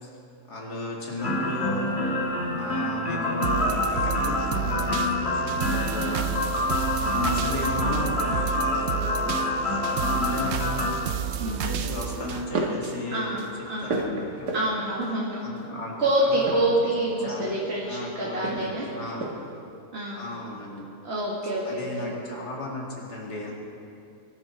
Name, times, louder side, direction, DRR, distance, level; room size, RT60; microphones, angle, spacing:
voice 1, 0.5-1.9 2.5-5.1 5.5-6.4 7.0-8.9 9.9-10.8 11.4-13.3 13.8-14.6 15.4-15.9 16.2-16.7 17.2-17.5 17.8-19.4 20.1-20.8 21.6-23.5, left 2 dB, 80° left, -2 dB, 3.0 m, -35 dB
sound 1, 1.2-10.9, left 2 dB, 40° left, 2.8 m, -27 dB
sound 2, 3.4-13.5 13.9-14.0, right 9 dB, 70° right, 0.6 m, -31 dB
voice 2, 11.4-11.7 13.1-14.0 14.5-15.4 16.0-18.9 19.9-20.5 21.0-22.1, right 1 dB, 40° right, -5 dB, 2.1 m, -27 dB
sound 3, 12.2-12.9 13.3-15.0 16.3-17.8 18.4-19.6, right 2 dB, 90° right, 2.4 m, -33 dB
23.0 x 12.5 x 4.7 m, 2.6 s
omnidirectional pair, 1.7 m